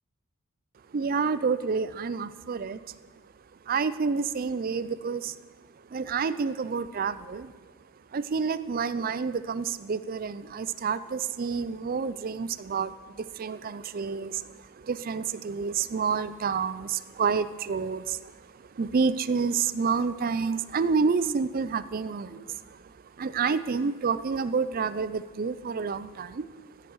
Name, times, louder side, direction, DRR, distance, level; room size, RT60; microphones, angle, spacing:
voice 1, 0.9-2.9 3.7-5.3 5.9-7.5 8.1-14.4 14.8-18.3 18.8-22.4 23.2-26.4, right 5 dB, 40° right, 15 dB, 0.4 m, -29 dB
15.0 x 10.5 x 4.7 m, 1.4 s
head